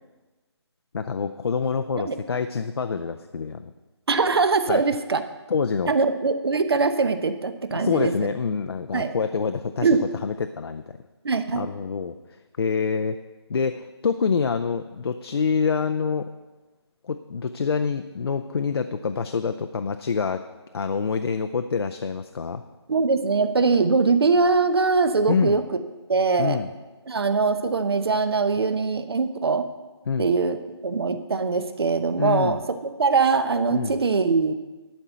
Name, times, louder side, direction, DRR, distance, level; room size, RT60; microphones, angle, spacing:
voice 1, 0.9-3.7 4.7-4.8 5.5-5.9 7.7-9.9 10.2-11.0 11.5-12.2 12.6-13.2 13.5-16.3 17.0-20.4 20.7-22.6 25.3-25.6 26.4-26.7 30.1-30.3 32.2-32.6 33.7-34.0, left 5 dB, 60° left, 7 dB, 0.5 m, -26 dB
voice 2, 4.1-5.2 5.9-8.1 8.9-9.1 9.8-10.0 11.2-11.7 22.9-25.6 26.1-26.6 27.1-29.7 30.2-30.6 30.8-32.6 33.0-34.5, right 4 dB, 65° right, 10 dB, 0.8 m, -22 dB
11.5 x 4.5 x 7.9 m, 1.2 s
figure-of-eight pair, 165°, 14 cm